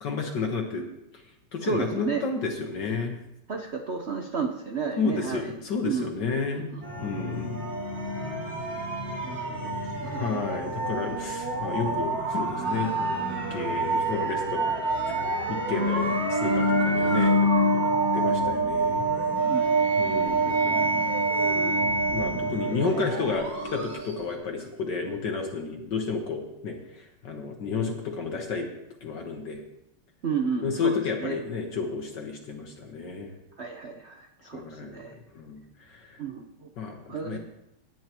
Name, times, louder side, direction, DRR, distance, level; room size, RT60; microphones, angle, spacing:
voice 1, 0.0-0.8 1.5-3.2 5.0-7.6 10.0-15.2 15.5-19.1 20.0-21.0 22.1-28.7 29.0-29.6 30.6-33.3 34.5-35.1 35.3-36.2 36.8-37.4, left 4 dB, 60° left, 2 dB, 1.6 m, -32 dB
voice 2, 1.6-2.2 3.5-5.5 5.8-6.8 9.2-9.7 10.0-10.4 19.5-20.0 21.4-21.7 30.2-31.4 33.6-35.1 36.2-36.7 37.1-37.4, right 5 dB, 85° right, 4 dB, 0.5 m, -33 dB
sound 1, 6.8-24.3, right 2 dB, 40° right, 3.0 m, -26 dB
18.0 x 9.3 x 3.0 m, 0.84 s
omnidirectional pair, 2.4 m